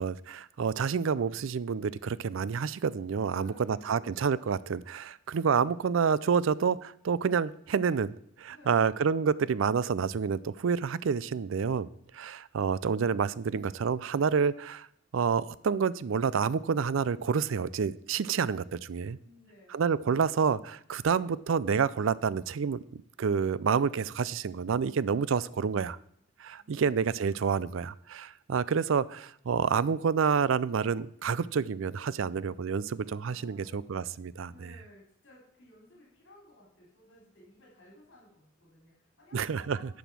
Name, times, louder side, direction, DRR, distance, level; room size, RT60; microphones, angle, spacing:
voice 1, 0.0-11.9 12.1-14.9 15.1-19.2 19.7-22.8 23.2-26.0 26.4-34.7 39.3-39.8, right 6 dB, 70° right, 0.4 m, -28 dB
voice 2, 3.2-4.0 8.5-8.9 19.2-19.8 26.6-27.4 32.9-33.9 34.4-39.9, left 1 dB, 60° left, 3.5 m, -57 dB
10.0 x 6.2 x 6.1 m
head